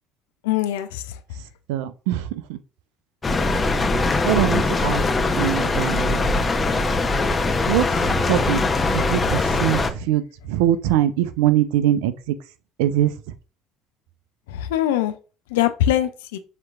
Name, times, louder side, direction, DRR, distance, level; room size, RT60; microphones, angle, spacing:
voice 1, 0.4-1.0 14.5-15.1 15.5-16.4, left 12 dB, 75° left, 0.5 m, -22 dB
voice 2, 1.7-2.6 4.2-5.0 5.4-6.2 7.7-8.6 8.9-12.4 12.8-13.1, right 12 dB, 75° right, 0.4 m, -22 dB
sound 1, 3.2-9.9, left 3 dB, 25° left, 0.8 m, -21 dB
7.4 x 3.0 x 2.4 m
hypercardioid pair, 60°, 0 cm